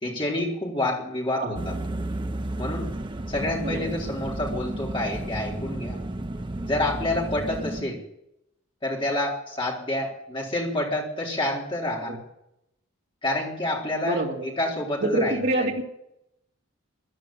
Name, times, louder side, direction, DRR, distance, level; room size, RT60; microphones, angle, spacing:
voice 1, 0.0-1.7 2.6-2.9 3.3-6.0 6.7-8.0 8.8-12.1 13.2-15.4, left 1 dB, 25° left, -2 dB, 4.1 m, -28 dB
sound 1, 1.6-7.8, right 1 dB, 20° right, 0.7 m, -32 dB
voice 2, 3.6-3.9 7.8-7.9 12.0-12.2 14.0-14.5 15.0-15.8, right 1 dB, 50° right, -1 dB, 3.1 m, -27 dB
15.5 x 10.5 x 8.8 m, 0.82 s
head